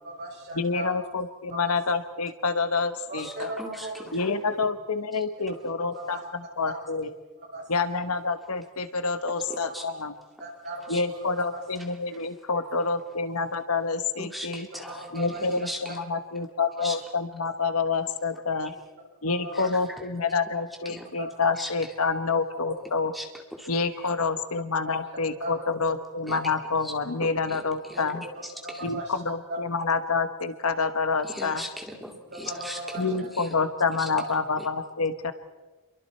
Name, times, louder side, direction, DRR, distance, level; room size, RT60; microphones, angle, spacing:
voice 1, 0.0-1.1 1.5-1.7 3.1-4.4 5.4-6.2 6.7-6.8 7.5-7.9 9.4-9.6 10.4-11.6 12.6-12.9 14.8-15.4 19.3-19.7 21.2-21.3 22.0-22.1 22.5-22.7 23.9-24.1 24.9-25.0 25.4-25.6 26.3-26.4 28.0-28.1 28.6-29.2 29.5-29.6 32.3-33.3, right 1 dB, 50° right, -3 dB, 7.8 m, -38 dB
voice 2, 0.5-3.5 4.1-7.1 7.7-10.1 10.9-14.7 15.1-18.7 19.2-23.1 23.7-28.2 28.8-31.6 33.0-35.3, left 4 dB, 90° left, 10 dB, 1.3 m, -28 dB
voice 3, 3.2-4.3 5.1-5.2 9.7-9.8 10.9-11.0 14.2-16.0 16.8-17.0 19.5-19.7 20.5-21.1 21.6-21.7 23.1-23.7 26.3-26.4 26.8-26.9 27.2-28.9 31.2-33.6 34.0-34.1 34.6-34.7, equal, ahead, 2 dB, 2.1 m, -40 dB
28.5 x 23.0 x 4.5 m, 1.2 s
head